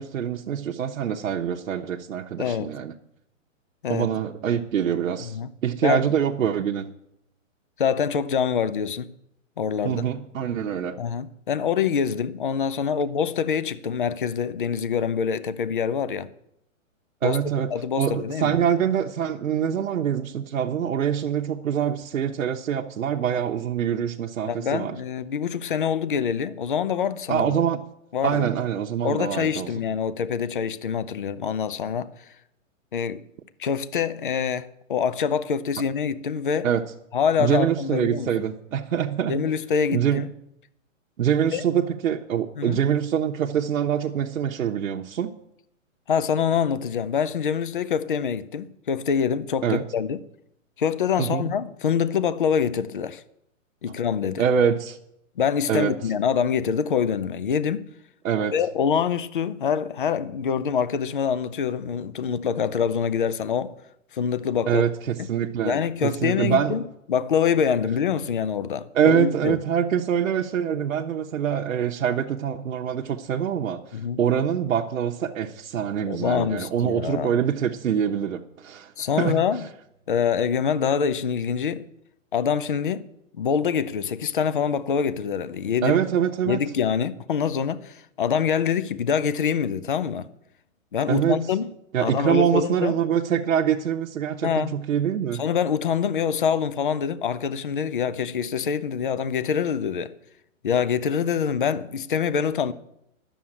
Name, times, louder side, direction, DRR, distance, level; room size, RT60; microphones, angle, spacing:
voice 1, 0.0-2.9 3.9-6.9 9.8-11.0 17.2-25.0 27.3-27.8 28.2-29.7 36.6-36.8 37.4-39.4 39.9-40.2 41.2-45.3 49.6-49.8 51.2-51.5 54.4-55.0 55.7-55.9 58.2-58.5 64.7-66.8 68.9-78.9 79.2-79.4 85.8-86.6 91.1-91.4 91.9-95.4, right 8 dB, 85° right, 1.0 m, -24 dB
voice 2, 2.4-2.7 3.8-4.1 5.2-5.5 5.8-6.1 7.8-9.1 9.6-10.0 11.0-16.3 17.2-17.4 17.7-18.6 24.5-27.6 28.1-28.5 29.0-32.1 32.9-33.2 33.6-36.7 37.1-38.3 39.3-40.3 41.5-41.6 42.6-42.8 46.1-50.2 50.8-53.2 53.8-54.4 55.4-57.9 58.5-63.8 64.1-64.9 65.2-65.3 65.6-66.8 67.1-69.6 73.9-74.2 76.1-77.3 79.0-79.6 80.1-81.8 82.3-83.0 83.4-86.0 86.5-90.3 90.9-91.7 92.0-92.9 94.4-94.7 95.4-100.1 100.6-102.7, left 7 dB, 40° left, 0.5 m, -25 dB
11.0 x 7.0 x 8.7 m
hypercardioid pair, 175°, 40 cm